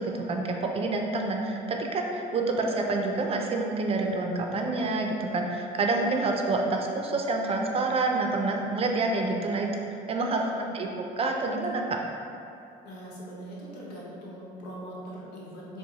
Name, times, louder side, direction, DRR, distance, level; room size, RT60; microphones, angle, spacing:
voice 1, 0.0-9.7 10.1-10.4 10.7-12.0, right 3 dB, 35° right, 2 dB, 0.4 m, -28 dB
voice 2, 10.3-10.8 12.8-15.8, right 1 dB, 90° left, -5 dB, 1.0 m, -41 dB
4.6 x 2.1 x 3.9 m, 2.6 s
cardioid pair, 110°, 17 cm